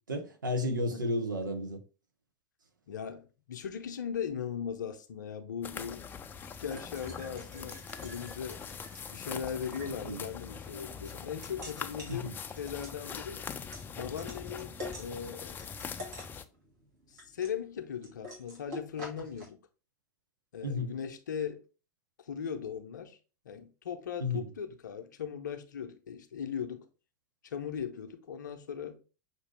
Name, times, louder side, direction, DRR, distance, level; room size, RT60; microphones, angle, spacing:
voice 1, 0.1-1.8 10.1-10.2 12.1-12.3 20.6-20.9 24.2-24.4, left 1 dB, 80° right, 0.7 m, -32 dB
voice 2, 0.9-1.2 2.9-6.1 6.6-8.6 9.1-13.4 13.9-15.6 17.1-19.6 20.5-21.6 22.2-23.2 23.4-26.9 27.4-29.0, left 7 dB, 70° left, 0.6 m, -39 dB
sound 1, 5.6-16.4, left 6 dB, 20° left, 0.4 m, -43 dB
sound 2, 6.5-19.5, left 1 dB, 60° right, 1.8 m, -49 dB
5.9 x 2.7 x 3.3 m
figure-of-eight pair, 85°, 10 cm